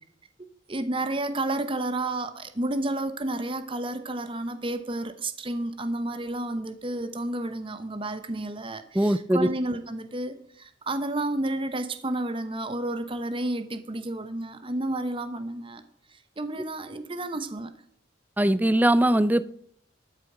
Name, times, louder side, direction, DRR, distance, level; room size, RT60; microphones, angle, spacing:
voice 1, 0.7-15.8 16.4-17.7, right 2 dB, 25° right, 10 dB, 0.9 m, -31 dB
voice 2, 8.9-9.5 18.4-19.5, right 1 dB, 10° right, 16 dB, 0.5 m, -21 dB
13.5 x 8.9 x 5.0 m, 0.66 s
head